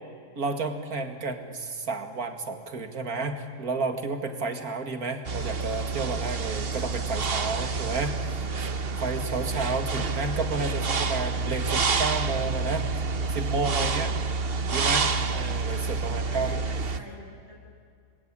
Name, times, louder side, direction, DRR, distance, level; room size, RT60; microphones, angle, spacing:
voice 1, 0.4-8.4 9.0-12.9 13.3-14.1 14.7-15.0 15.3-16.6, right 3 dB, 85° right, 7 dB, 2.5 m, -31 dB
sound 1, 5.3-17.0, right 4 dB, 45° right, 1.2 m, -28 dB
voice 2, 6.4-8.9 14.4-15.1 15.6-17.5, equal, 45° left, -8 dB, 7.6 m, -49 dB
27.5 x 21.0 x 10.0 m, 2.2 s
omnidirectional pair, 1.5 m